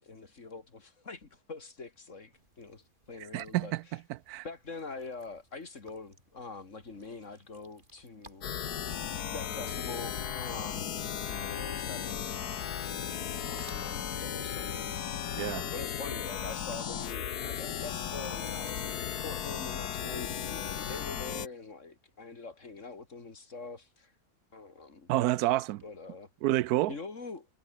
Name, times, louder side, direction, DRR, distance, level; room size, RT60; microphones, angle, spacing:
voice 1, 0.0-4.0 4.4-8.5 9.3-11.0 11.3-12.6 13.1-14.9 15.4-24.1 24.5-25.1 25.8-26.3 26.9-27.5, left 4 dB, 50° left, 3.1 m, -44 dB
sound 1, 2.3-20.1, right 1 dB, 30° right, 4.9 m, -62 dB
voice 2, 3.3-3.8 4.1-4.4 15.3-15.6 25.1-25.8 26.4-26.9, right 15 dB, 80° right, 1.1 m, -28 dB
sound 2, 8.4-21.5, left 9 dB, 80° left, 1.7 m, -36 dB
omnidirectional pair, 1.6 m